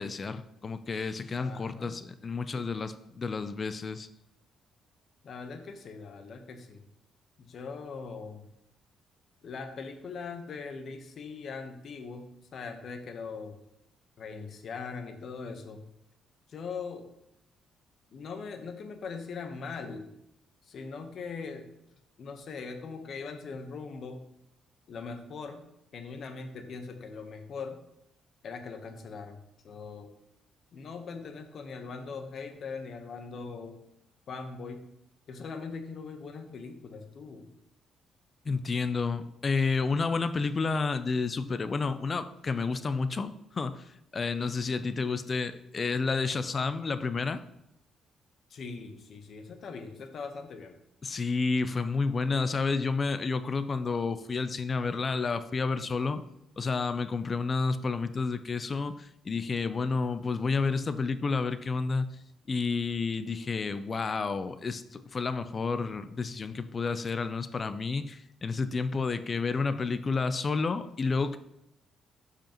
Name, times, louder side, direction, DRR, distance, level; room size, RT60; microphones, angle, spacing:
voice 1, 0.0-4.1 38.5-43.8 44.1-47.4 51.0-56.2 56.6-62.1 62.5-71.4, left 4 dB, 40° left, 12 dB, 0.5 m, -30 dB
voice 2, 1.4-2.0 5.2-6.9 7.4-8.4 9.4-13.6 14.2-15.9 16.5-17.1 18.1-20.1 20.6-21.7 22.2-24.3 24.9-27.8 28.4-30.1 30.7-33.8 34.3-34.9 35.3-37.5 48.5-50.8, left 4 dB, 60° left, 6 dB, 1.0 m, -41 dB
12.0 x 5.0 x 3.0 m, 0.81 s
cardioid pair, 90°, 0 cm